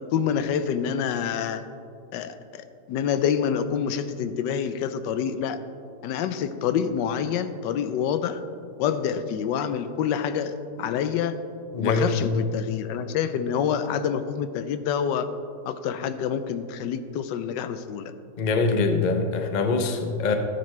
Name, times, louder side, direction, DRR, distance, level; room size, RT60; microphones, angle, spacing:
voice 1, 0.1-1.6 2.1-5.6 6.0-8.4 8.8-11.3 11.8-15.3 15.7-18.1, left 8 dB, 85° left, 11 dB, 1.2 m, -27 dB
voice 2, 11.7-12.3 18.4-20.3, left 4 dB, 50° left, 5 dB, 0.5 m, -24 dB
14.0 x 9.2 x 3.2 m, 2.4 s
omnidirectional pair, 1.9 m